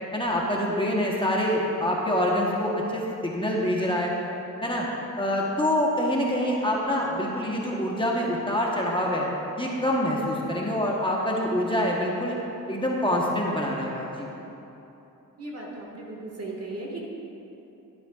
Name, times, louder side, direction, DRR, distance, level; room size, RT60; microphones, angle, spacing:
voice 1, 0.1-4.1 4.6-4.9 5.2-9.3 9.6-12.4 12.7-14.3, left 1 dB, 15° left, -3 dB, 1.1 m, -26 dB
voice 2, 15.4-17.0, right 2 dB, 50° right, -2 dB, 1.8 m, -36 dB
11.5 x 11.0 x 2.4 m, 3.0 s
wide cardioid pair, 90°, 33 cm